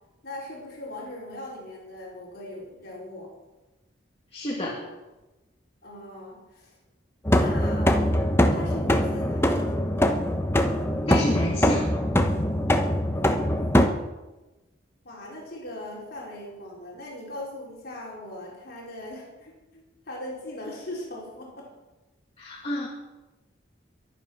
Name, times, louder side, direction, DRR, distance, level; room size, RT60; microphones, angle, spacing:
voice 1, 0.2-3.3 5.8-6.8 7.3-8.0 8.5-9.7 13.1-13.4 15.0-21.7, left 1 dB, 50° left, -4 dB, 4.8 m, -39 dB
voice 2, 4.3-4.8 11.1-11.9 22.4-22.9, left 1 dB, 30° left, -3 dB, 2.3 m, -29 dB
sound 1, 7.3-13.9, left 1 dB, 10° left, 1.0 m, -22 dB
23.5 x 8.4 x 6.2 m, 1.1 s
head